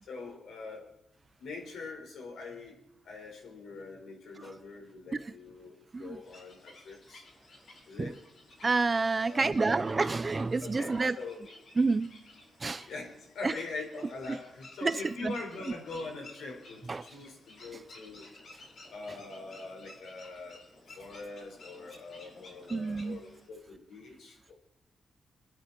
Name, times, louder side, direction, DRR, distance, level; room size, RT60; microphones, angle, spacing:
voice 1, 0.1-0.9 1.4-2.8 3.1-7.2 7.9-8.2 9.2-9.8 10.6-11.4 12.9-18.2 18.9-20.6 21.0-24.5, left 3 dB, 80° left, 5.2 m, -43 dB
sound 1, 6.2-23.5, left 2 dB, 50° left, 5.1 m, -54 dB
voice 2, 8.6-11.2 11.8-12.1 12.6-12.9 13.4-13.5 14.8-15.4 16.9-17.1 22.7-23.2, right 3 dB, 20° right, 0.4 m, -29 dB
26.0 x 10.5 x 4.5 m
wide cardioid pair, 175°, 0 cm